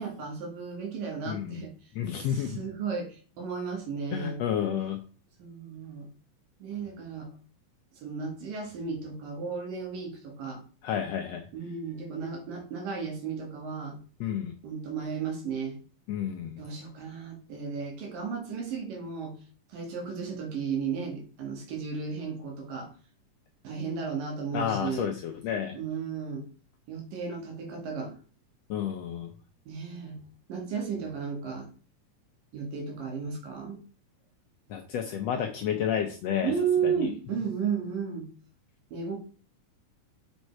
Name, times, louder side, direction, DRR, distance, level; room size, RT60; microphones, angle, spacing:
voice 1, 0.0-1.7 2.2-4.4 5.4-6.1 6.6-7.3 8.0-10.6 11.5-14.0 14.6-15.8 16.6-19.3 19.7-22.9 23.6-25.1 25.7-26.5 26.9-28.2 29.7-30.2 30.5-31.7 32.5-33.8 36.4-38.3 38.9-39.2, right 6 dB, 80° right, 2 dB, 3.8 m, -34 dB
voice 2, 1.3-1.6 1.9-2.6 4.1-5.0 10.8-11.5 14.2-14.5 16.1-16.6 24.5-25.8 28.7-29.3 34.7-36.5 36.8-37.1, left 9 dB, 80° left, 5 dB, 1.5 m, -30 dB
7.5 x 5.3 x 4.6 m, 0.40 s
omnidirectional pair, 3.8 m